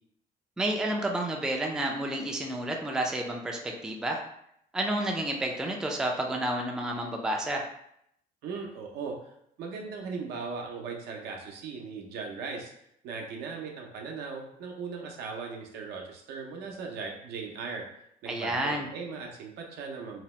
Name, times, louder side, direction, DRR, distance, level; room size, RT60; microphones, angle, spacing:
voice 1, 0.6-4.2 4.7-7.7 18.3-18.9, right 1 dB, 5° right, 1 dB, 0.3 m, -30 dB
voice 2, 8.4-9.3 9.6-12.7 13.0-17.8 18.2-20.2, right 5 dB, 75° right, 1 dB, 0.6 m, -38 dB
2.8 x 2.0 x 3.0 m, 0.74 s
cardioid pair, 110°, 17 cm